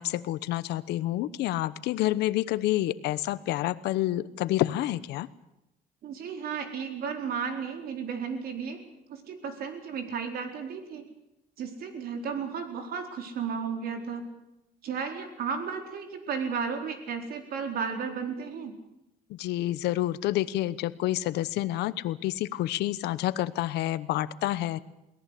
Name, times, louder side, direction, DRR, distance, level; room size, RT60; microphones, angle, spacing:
voice 1, 0.0-5.3 19.3-24.8, left 15 dB, 80° left, 16 dB, 1.0 m, -28 dB
voice 2, 6.0-8.8 9.1-11.0 11.6-14.3 14.8-18.8, right 6 dB, 65° right, 5 dB, 4.3 m, -34 dB
22.5 x 18.0 x 8.4 m, 0.89 s
cardioid pair, 110°, 17 cm